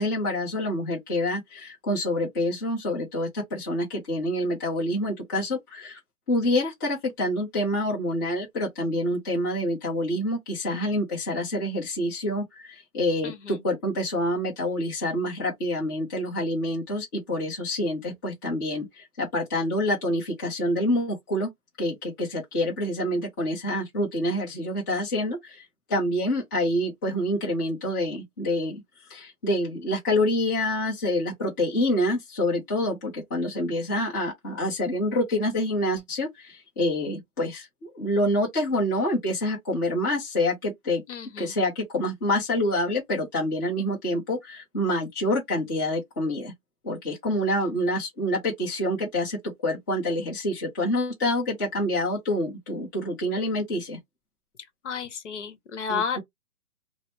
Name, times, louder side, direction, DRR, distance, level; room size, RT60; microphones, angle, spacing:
voice 1, 0.0-6.0 6.3-21.5 21.8-25.6 25.9-28.8 29.1-41.0 41.4-46.5 46.8-54.0 55.9-56.2, left 1 dB, 15° left, 0.7 m, -27 dB
voice 2, 41.1-41.5 54.8-56.2, left 6 dB, 55° left, 1.0 m, -31 dB
2.8 x 2.0 x 3.0 m
hypercardioid pair, 165°, 44 cm